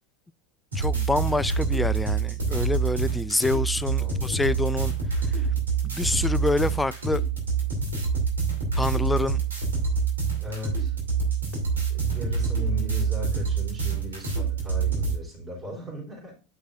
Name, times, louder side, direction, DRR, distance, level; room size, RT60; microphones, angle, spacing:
voice 1, 0.7-4.9 5.4-5.5 5.8-7.2 8.8-9.4, left 2 dB, 10° left, 0.4 m, -27 dB
sound 1, 0.7-15.1, right 5 dB, 85° right, 2.5 m, -26 dB
voice 2, 4.0-4.5 10.4-11.0 11.9-16.3, left 2 dB, 25° right, 3.9 m, -37 dB
9.8 x 5.4 x 2.5 m
hypercardioid pair, 80°, 0 cm